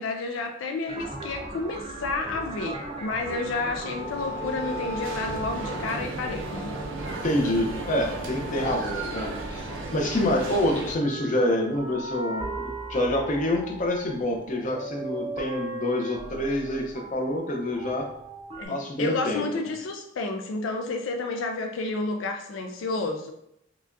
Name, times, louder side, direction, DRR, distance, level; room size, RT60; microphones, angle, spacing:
voice 1, 0.0-6.8 18.6-23.3, left 3 dB, 85° left, 4 dB, 0.4 m, -31 dB
sound 1, 0.9-18.6, right 1 dB, 30° right, 0.5 m, -38 dB
sound 2, 2.8-11.0, right 2 dB, 85° right, 0.6 m, -35 dB
voice 2, 7.2-18.1 18.7-19.4, left 1 dB, 40° left, 1 dB, 0.7 m, -27 dB
4.8 x 2.3 x 2.5 m, 0.81 s
head